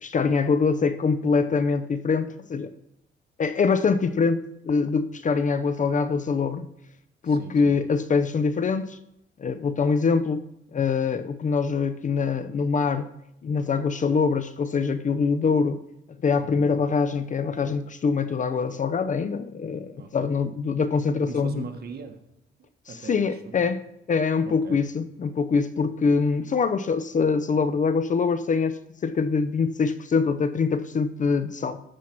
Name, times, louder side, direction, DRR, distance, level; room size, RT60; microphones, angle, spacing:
voice 1, 0.0-2.7 3.4-6.7 7.2-9.0 9.4-13.1 13.4-15.8 16.2-21.6 23.0-23.8 24.1-31.8, left 5 dB, 40° left, 11 dB, 0.6 m, -24 dB
voice 2, 7.2-7.8 16.4-16.8 20.0-20.3 21.2-22.2 22.6-23.7 24.4-24.8, right 5 dB, 50° right, 5 dB, 1.4 m, -41 dB
13.0 x 4.6 x 6.0 m, 0.79 s
cardioid pair, 90°, 20 cm